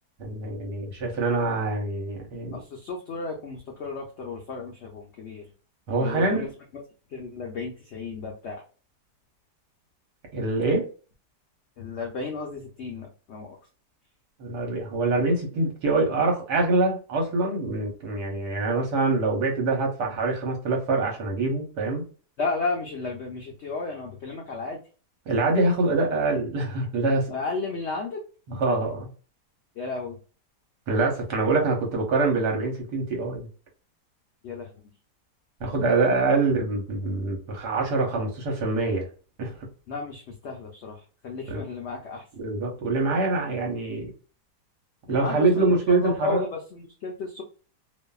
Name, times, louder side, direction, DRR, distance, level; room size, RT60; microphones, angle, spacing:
voice 1, 0.2-2.6 5.9-6.5 10.3-10.9 14.4-22.0 25.3-27.3 28.5-29.0 30.9-33.5 35.6-39.1 39.4-39.5 41.5-41.6 42.4-44.1 45.1-46.5, right 3 dB, 75° right, 1 dB, 1.4 m, -25 dB
voice 2, 2.5-5.5 6.0-6.5 7.1-8.6 11.8-13.6 22.4-24.8 27.3-28.2 29.8-30.2 34.4-34.7 39.9-42.2 45.1-47.4, left 4 dB, 75° left, 0 dB, 0.6 m, -33 dB
2.6 x 2.5 x 2.3 m, 0.37 s
omnidirectional pair, 1.8 m